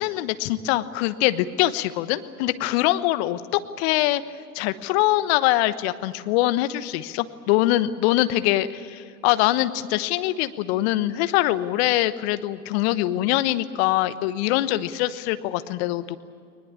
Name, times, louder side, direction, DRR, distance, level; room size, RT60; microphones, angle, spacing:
voice 1, 0.0-3.4 3.8-4.2 4.5-16.2, left 15 dB, 45° left, 13 dB, 1.2 m, -23 dB
21.5 x 20.5 x 8.6 m, 2.4 s
figure-of-eight pair, 100°, 46 cm